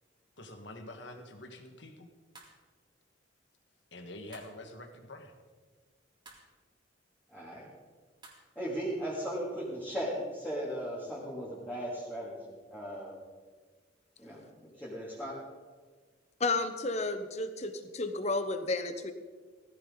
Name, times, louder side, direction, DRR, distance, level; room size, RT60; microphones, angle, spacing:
voice 1, 0.4-2.1 3.9-5.3, left 1 dB, 70° left, 5 dB, 1.7 m, -46 dB
sound 1, 2.3-2.7 4.3-4.6 6.2-6.5 8.2-8.5, right 2 dB, 25° right, 2.3 m, -54 dB
voice 2, 7.3-7.7 8.5-13.2 14.2-15.3, equal, 10° left, -9 dB, 2.8 m, -37 dB
voice 3, 16.4-19.1, left 3 dB, 35° left, 9 dB, 1.0 m, -32 dB
17.0 x 15.0 x 4.0 m, 1.5 s
head